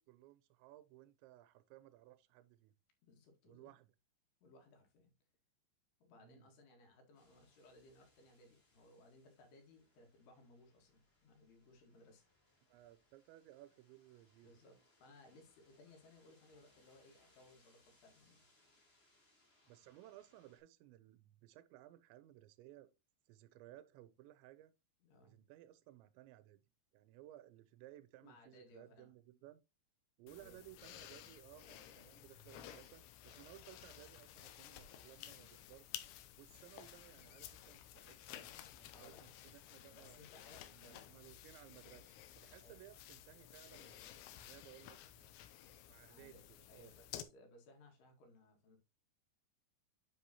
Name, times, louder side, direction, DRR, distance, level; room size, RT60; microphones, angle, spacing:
voice 1, 0.0-2.7 3.5-4.0 6.2-6.5 12.7-14.6 19.7-22.9 23.3-24.7 25.2-26.6 26.9-29.6 30.2-35.9 36.4-40.2 40.7-44.1 44.4-45.4 45.9-47.0, right 14 dB, 85° right, 3.0 m, -60 dB
voice 2, 3.0-3.7 4.4-5.1 6.0-12.2 14.4-18.4 25.0-25.4 28.2-29.1 30.3-30.6 38.9-39.5 39.9-41.1 42.6-42.8 45.6-45.7 46.1-48.8, left 2 dB, 65° left, 3.7 m, -63 dB
sound 1, 7.1-20.6, left 1 dB, 15° left, 2.4 m, -74 dB
sound 2, 30.3-47.2, left 12 dB, 85° left, 3.2 m, -54 dB
9.9 x 5.4 x 2.9 m
omnidirectional pair, 5.3 m